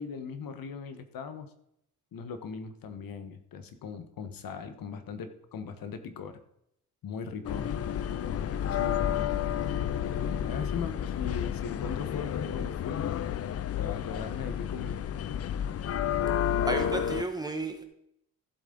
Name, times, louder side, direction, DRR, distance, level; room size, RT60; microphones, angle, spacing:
voice 1, 0.0-1.5 2.1-6.4 7.0-7.7 8.3-9.3 10.1-13.2 13.8-15.0, left 5 dB, 65° left, 9 dB, 1.3 m, -39 dB
sound 1, 7.4-17.2, left 9 dB, 40° left, 0.5 m, -31 dB
voice 2, 16.7-17.8, right 2 dB, 10° right, 4 dB, 1.2 m, -32 dB
14.5 x 8.2 x 4.0 m, 0.74 s
wide cardioid pair, 160°, 37 cm